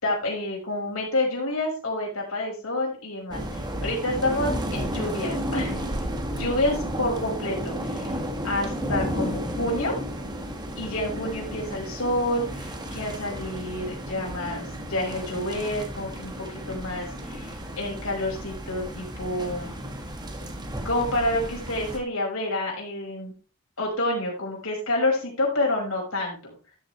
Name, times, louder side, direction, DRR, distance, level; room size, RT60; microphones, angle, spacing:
voice 1, 0.0-8.2 8.4-10.0 10.8-19.8 20.8-23.3 23.8-26.5, left 1 dB, 70° left, -1 dB, 5.3 m, -28 dB
sound 1, 3.3-22.0, equal, 20° right, 1.7 m, -33 dB
12.5 x 7.7 x 3.2 m, 0.36 s
head